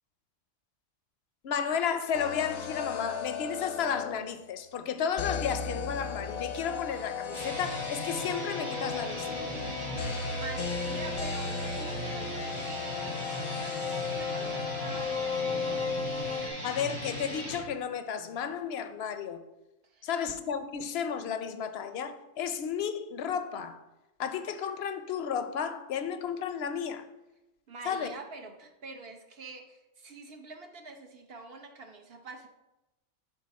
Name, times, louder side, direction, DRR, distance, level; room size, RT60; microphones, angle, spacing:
voice 1, 1.4-9.4 16.6-19.4 20.0-23.8 24.2-27.1 27.9-28.2, left 7 dB, 60° left, 0.8 m, -33 dB
sound 1, 2.1-4.4 5.2-16.5, left 5 dB, 90° left, 1.2 m, -35 dB
sound 2, 7.2-17.6, equal, 80° right, 3.5 m, -38 dB
voice 2, 10.0-16.2 19.8-20.1 27.7-32.5, right 3 dB, 55° right, 0.9 m, -46 dB
11.0 x 4.1 x 4.1 m
omnidirectional pair, 1.4 m